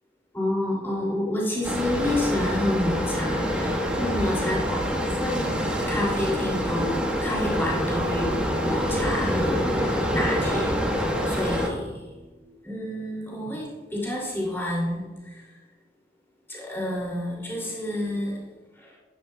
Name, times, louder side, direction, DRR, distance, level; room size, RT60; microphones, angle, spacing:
voice 1, 0.3-11.9 12.6-15.3 16.5-18.4 18.8-19.0, left 1 dB, 15° left, -4 dB, 2.6 m, -29 dB
sound 1, 1.6-11.7, equal, 5° right, 1.1 m, -26 dB
sound 2, 12.6-13.6, equal, 60° left, 3.0 m, -44 dB
11.5 x 10.5 x 2.2 m, 1.2 s
head